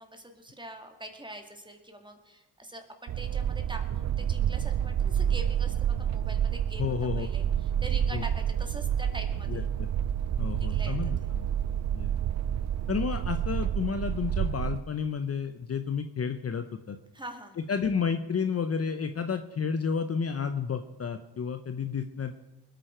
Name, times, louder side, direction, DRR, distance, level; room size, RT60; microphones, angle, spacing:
voice 1, 0.0-9.7 10.6-11.0 17.1-17.6, right 1 dB, 10° right, 4 dB, 2.2 m, -44 dB
sound 1, 3.1-14.8, right 9 dB, 45° right, 0.5 m, -29 dB
voice 2, 6.8-7.3 8.1-8.2 9.5-9.9 10.4-11.5 11.9-12.1 12.9-17.0 17.6-22.3, left 6 dB, 35° left, 8 dB, 0.8 m, -31 dB
21.0 x 9.1 x 4.5 m, 1.0 s
cardioid pair, 75°, 41 cm